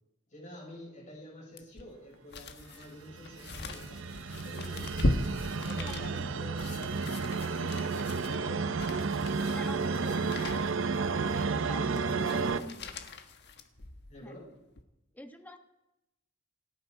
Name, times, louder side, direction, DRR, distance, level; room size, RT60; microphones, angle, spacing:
voice 1, 0.3-5.2 5.6-8.7 9.2-10.1 11.6-12.8 14.1-14.5, left 1 dB, 35° left, -3 dB, 6.1 m, -49 dB
sound 1, 1.6-14.2 14.7-14.8, left 1 dB, 55° left, 1.4 m, -38 dB
sound 2, 2.9-12.6, right 4 dB, 65° right, 0.8 m, -32 dB
voice 2, 5.8-6.5 9.5-10.3 11.3-12.8 14.2-14.4 15.1-15.6, left 1 dB, 10° left, 6 dB, 1.3 m, -47 dB
29.0 x 9.7 x 4.7 m, 0.92 s
head